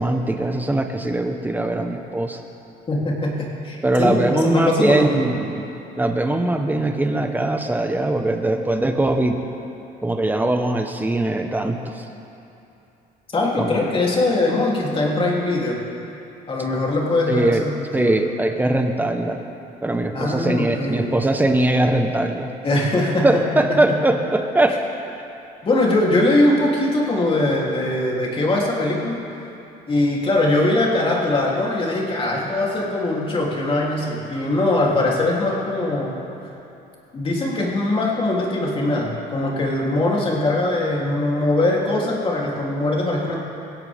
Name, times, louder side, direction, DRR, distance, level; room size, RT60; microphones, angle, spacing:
voice 1, 0.0-2.4 3.8-5.7 6.0-9.4 10.0-12.0 13.6-13.8 17.3-17.6 17.9-19.4 19.8-22.5 23.2-24.8, right 1 dB, 10° right, 4 dB, 1.4 m, -21 dB
voice 2, 2.9-5.2 13.3-15.8 16.5-18.2 20.1-21.2 22.6-23.4 23.7-23.8 25.6-29.2 29.9-36.2 37.1-43.4, left 2 dB, 30° left, -3 dB, 3.6 m, -21 dB
21.5 x 16.5 x 3.8 m, 2.8 s
cardioid pair, 110°, 17 cm